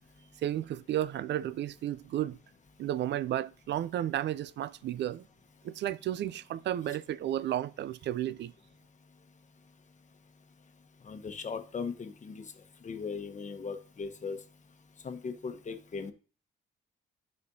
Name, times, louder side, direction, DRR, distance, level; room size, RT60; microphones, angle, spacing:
voice 1, 0.4-2.4 2.8-5.2 5.6-8.5, right 12 dB, 65° right, 0.4 m, -33 dB
voice 2, 11.0-12.4 12.8-14.4 15.0-16.1, left 5 dB, 40° left, 1.1 m, -38 dB
12.5 x 4.2 x 2.7 m
cardioid pair, 90°, 20 cm